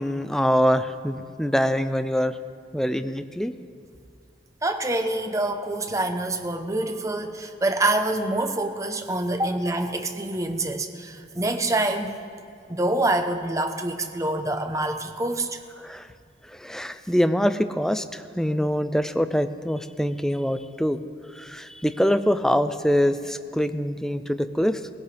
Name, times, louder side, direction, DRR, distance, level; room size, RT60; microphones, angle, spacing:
voice 1, 0.0-2.4 2.7-3.5 15.8-16.1 16.4-21.0 21.3-24.9, equal, 5° left, 10 dB, 0.5 m, -24 dB
voice 2, 4.6-12.1 12.7-15.6, right 2 dB, 20° right, 6 dB, 0.9 m, -26 dB
19.5 x 16.5 x 3.4 m, 2.3 s
head